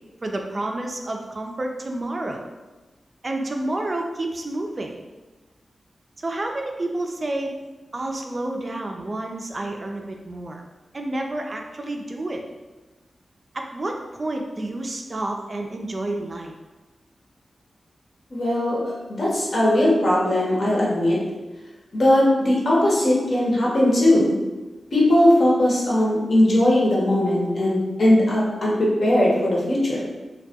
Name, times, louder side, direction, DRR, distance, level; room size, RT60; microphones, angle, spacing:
voice 1, 0.2-2.4 3.2-4.9 6.2-7.5 7.9-10.6 10.9-12.4 13.5-16.5, right 2 dB, 45° right, 2 dB, 0.3 m, -29 dB
voice 2, 18.3-18.8 19.1-21.2 21.9-24.3 24.9-30.0, left 1 dB, 65° left, -5 dB, 0.8 m, -19 dB
2.2 x 2.2 x 2.7 m, 1.1 s
cardioid pair, 50°, 0 cm